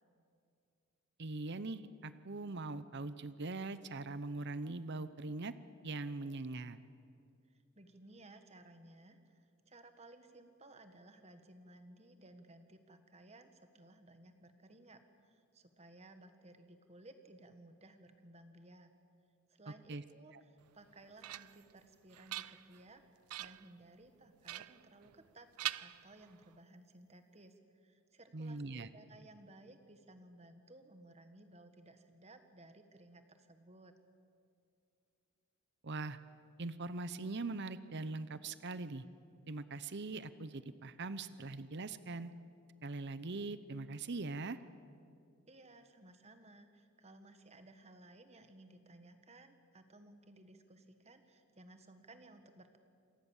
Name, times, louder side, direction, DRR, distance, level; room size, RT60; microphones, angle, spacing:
voice 1, 1.2-5.5 5.8-6.8 19.9-20.0 20.3-20.4 28.3-28.9 35.8-36.2 36.6-39.0 39.5-42.3 42.8-44.6, right 3 dB, 50° right, 14 dB, 0.8 m, -41 dB
voice 2, 7.5-18.9 19.5-23.0 23.4-25.5 25.8-33.9 45.5-52.8, right 2 dB, 30° right, 8 dB, 1.5 m, -58 dB
sound 1, 20.7-21.7 22.1-22.9 23.3-23.7 24.4-25.3 25.6-26.5, right 14 dB, 80° right, 0.5 m, -44 dB
27.0 x 19.0 x 7.3 m, 2.4 s
head